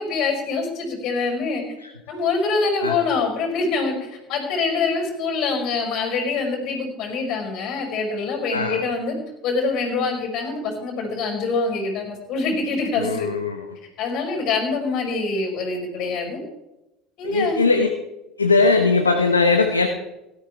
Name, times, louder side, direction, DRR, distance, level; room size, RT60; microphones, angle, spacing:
voice 1, 0.0-1.6 2.1-9.2 9.4-13.3 14.0-16.4 17.2-17.6, left 4 dB, 50° left, 1 dB, 5.3 m, -25 dB
voice 2, 13.0-13.7 17.2-17.9 18.4-19.9, left 4 dB, 90° left, 6 dB, 0.9 m, -19 dB
17.5 x 13.0 x 3.5 m, 0.95 s
figure-of-eight pair, 70°, 0 cm